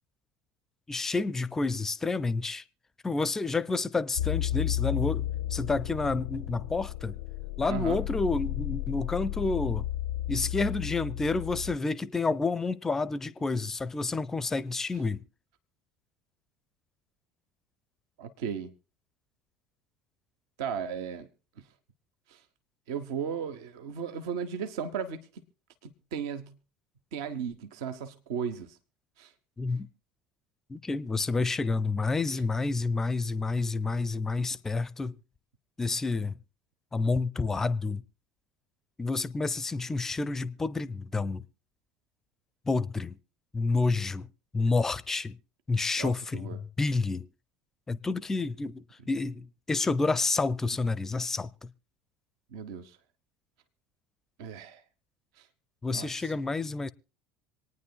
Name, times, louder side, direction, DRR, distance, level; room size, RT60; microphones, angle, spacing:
voice 1, 0.9-2.6 3.0-7.2 7.6-9.9 10.3-15.2 29.6-29.9 30.7-35.2 35.8-36.4 36.9-38.0 39.0-41.4 42.7-43.2 43.5-44.3 44.5-45.4 45.7-47.3 47.9-51.7 55.8-56.9, left 3 dB, 15° left, 0.5 m, -29 dB
sound 1, 4.2-11.8, left 14 dB, 70° left, 0.5 m, -33 dB
voice 2, 7.7-8.0 18.2-18.7 20.6-21.3 21.6-21.7 22.3-22.4 22.9-25.3 26.1-26.5 27.1-28.8 29.2-29.3 46.0-46.6 52.5-53.0 54.4-54.8 55.4-55.5 55.9-56.3, right 7 dB, 60° right, 0.7 m, -35 dB
26.0 x 9.5 x 2.3 m
figure-of-eight pair, 70°, 3 cm